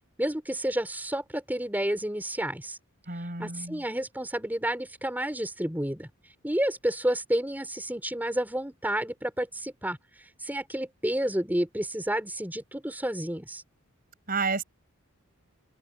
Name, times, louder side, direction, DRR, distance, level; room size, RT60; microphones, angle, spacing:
voice 1, 0.2-2.8 3.2-6.1 6.4-13.6, right 1 dB, 10° right, 4.5 m, -30 dB
voice 2, 3.1-3.8 14.3-14.6, right 4 dB, 40° right, 7.5 m, -30 dB
open air
head